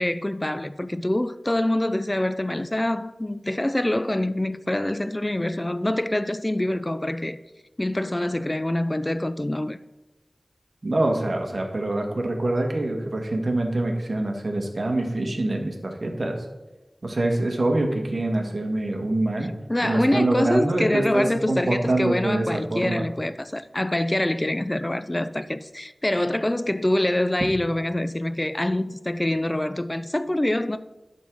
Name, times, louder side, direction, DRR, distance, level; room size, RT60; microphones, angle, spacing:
voice 1, 0.0-7.4 7.8-9.8 19.7-30.8, left 1 dB, 25° left, 0.3 m, -25 dB
voice 2, 10.8-16.3 17.0-19.5 19.8-23.0, right 2 dB, 55° right, 1.5 m, -25 dB
11.0 x 3.7 x 6.1 m
wide cardioid pair, 55°, 0 cm